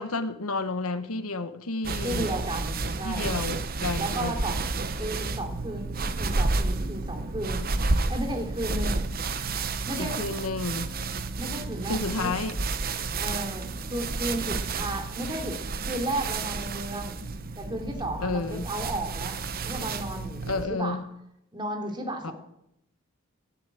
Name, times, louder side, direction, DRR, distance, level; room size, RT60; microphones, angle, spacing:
voice 1, 0.0-2.3 3.0-4.4 10.0-10.9 11.9-12.6 18.2-18.7 20.5-21.0 22.2-22.3, left 3 dB, 75° left, 1.1 m, -31 dB
sound 1, 1.8-20.7, right 3 dB, 40° right, 1.0 m, -31 dB
voice 2, 2.0-3.3 4.0-4.6 4.9-7.7 8.1-9.1 9.9-10.5 11.4-12.6 13.2-15.6 15.8-17.2 17.6-21.0 21.5-22.3, right 1 dB, 20° right, 2.9 m, -34 dB
15.0 x 10.5 x 9.0 m
head